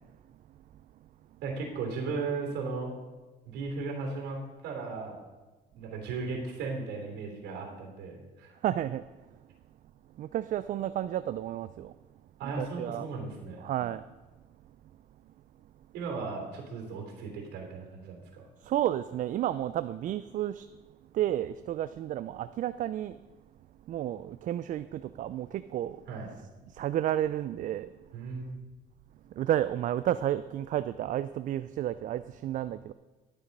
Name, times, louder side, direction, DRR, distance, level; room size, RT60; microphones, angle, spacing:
voice 1, 1.4-2.9 3.5-5.2 5.8-8.5 12.4-13.7 15.9-18.4 26.1-26.3 28.1-28.6, right 4 dB, 85° right, 3.1 m, -36 dB
voice 2, 8.6-9.0 10.2-11.9 12.4-13.1 13.6-14.0 18.6-20.6 21.1-23.2 23.9-26.0 26.8-27.9 29.4-32.9, right 12 dB, 50° right, 0.4 m, -31 dB
11.5 x 7.1 x 5.3 m
cardioid pair, 110°, 17 cm